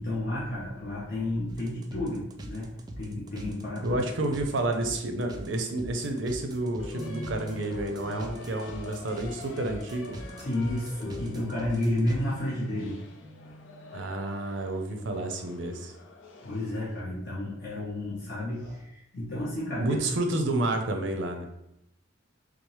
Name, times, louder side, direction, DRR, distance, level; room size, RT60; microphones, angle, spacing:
voice 1, 0.0-2.7 3.0-4.0 10.4-13.0 16.4-20.0, left 1 dB, 55° left, -7 dB, 0.9 m, -31 dB
sound 1, 1.5-12.2, right 1 dB, 20° right, 0.3 m, -43 dB
voice 2, 3.8-10.2 13.9-15.9 19.8-21.5, right 2 dB, 70° right, 5 dB, 0.6 m, -30 dB
sound 2, 6.8-17.0, left 2 dB, 80° left, 0.6 m, -44 dB
6.0 x 2.0 x 3.1 m, 0.83 s
head